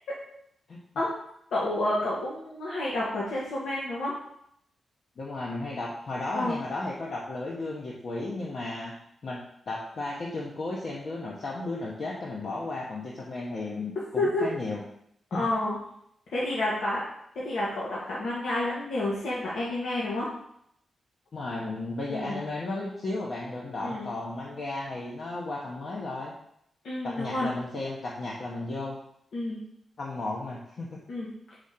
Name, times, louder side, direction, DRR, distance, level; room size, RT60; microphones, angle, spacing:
voice 1, 1.5-4.1 6.3-6.6 14.2-14.5 15.3-15.8 16.3-17.0 17.3-20.3 22.1-22.4 23.8-24.1 26.8-27.5 29.3-29.6 31.1-31.3, left 1 dB, 75° left, -6 dB, 1.4 m, -29 dB
voice 2, 5.2-8.9 9.2-9.4 9.7-14.8 15.3-15.5 21.3-26.3 27.0-29.0 30.0-30.9, left 2 dB, 45° left, -4 dB, 0.9 m, -34 dB
5.0 x 3.8 x 5.7 m, 0.73 s
wide cardioid pair, 175°, 0 cm